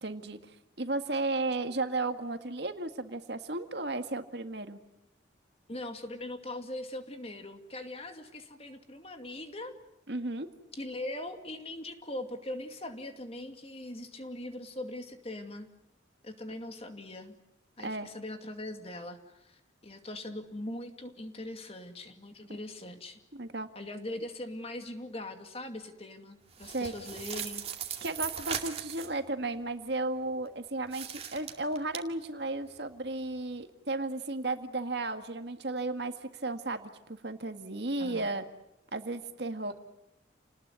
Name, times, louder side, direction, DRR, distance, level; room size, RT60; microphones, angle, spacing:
voice 1, 0.0-4.8 10.1-10.5 17.8-18.1 23.3-23.7 26.7-26.9 28.0-38.4 38.9-39.7, right 2 dB, 55° right, 7 dB, 1.9 m, -34 dB
voice 2, 5.7-9.8 10.7-15.7 16.2-17.4 17.8-23.2 23.8-27.6 38.0-38.3, left 1 dB, 30° left, 6 dB, 2.4 m, -41 dB
sound 1, 26.5-29.2 30.9-32.0, right 8 dB, 30° right, 2.3 m, -38 dB
29.5 x 19.5 x 9.6 m, 0.89 s
head